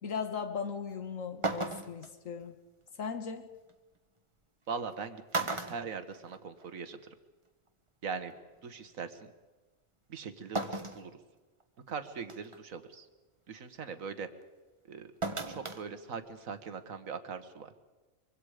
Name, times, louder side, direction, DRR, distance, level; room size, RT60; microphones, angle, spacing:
voice 1, 0.0-2.6 3.0-3.4, left 6 dB, 70° left, 7 dB, 2.0 m, -37 dB
sound 1, 0.9-1.0 1.4-2.1 3.7-3.8 4.8-4.9 5.3-6.7 7.0-7.1 8.4-8.5 10.6-11.1 11.6-11.7 12.3-12.6 15.2-15.8 16.2-16.3, right 2 dB, 25° right, 1.3 m, -35 dB
voice 2, 4.7-7.0 8.0-8.3 8.6-9.3 10.1-11.1 11.9-13.1 13.5-14.3 14.9-15.1 15.5-17.7, right 5 dB, 75° right, 10 dB, 1.8 m, -41 dB
24.5 x 24.0 x 5.0 m, 1.2 s
omnidirectional pair, 1.4 m